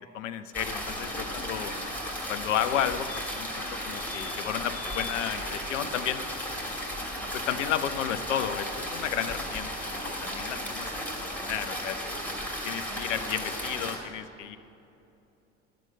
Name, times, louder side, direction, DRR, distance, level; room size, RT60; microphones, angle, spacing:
voice 1, 0.1-1.7 2.3-6.2 7.3-10.9 11.2-12.2 12.6-14.6, left 10 dB, 75° left, 12 dB, 0.7 m, -32 dB
sound 1, 0.5-14.0, equal, 5° left, 2.6 m, -35 dB
sound 2, 3.1-3.6 3.9-4.3 4.7-5.2 7.5-7.6 7.8-7.9, left 8 dB, 55° left, 1.2 m, -42 dB
12.0 x 7.7 x 6.4 m, 2.9 s
figure-of-eight pair, 65°, 37 cm